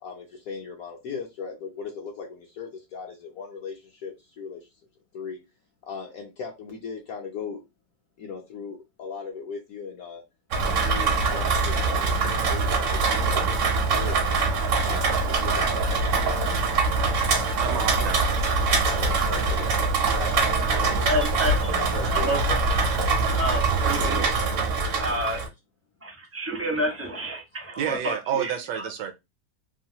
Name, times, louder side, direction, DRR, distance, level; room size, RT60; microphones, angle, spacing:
voice 1, 0.0-4.7 5.1-5.4 5.8-7.6 8.2-10.2 10.6-13.6 13.9-14.3 14.8-15.8 16.2-16.6 18.0-18.1 18.7-19.7 20.2-21.1 21.8-22.3 24.1-24.4, left 5 dB, 65° left, 0.9 m, -37 dB
Rain, 10.5-25.5, right 4 dB, 60° right, 0.8 m, -23 dB
voice 2, 17.6-18.3 20.9-21.1 27.8-29.1, right 8 dB, 75° right, 1.2 m, -30 dB
voice 3, 21.0-21.7 22.1-22.5 23.4-24.2 25.0-25.4 26.0-28.9, equal, 15° right, 0.4 m, -29 dB
3.1 x 2.3 x 2.8 m
omnidirectional pair, 2.0 m